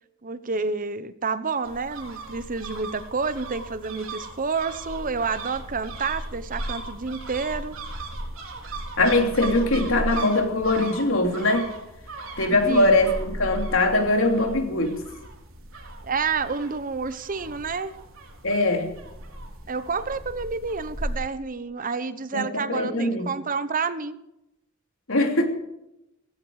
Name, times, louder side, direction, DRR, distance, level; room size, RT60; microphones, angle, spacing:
voice 1, 0.2-7.8 12.5-13.0 16.0-17.9 19.7-24.2, right 4 dB, 40° right, 13 dB, 0.9 m, -29 dB
sound 1, 1.6-21.2, right 1 dB, 80° right, 3.6 m, -37 dB
voice 2, 9.0-11.7 12.4-15.0 18.4-18.9 22.3-23.3 25.1-25.5, left 2 dB, 75° left, 4 dB, 3.1 m, -22 dB
17.0 x 16.5 x 4.9 m, 0.87 s
head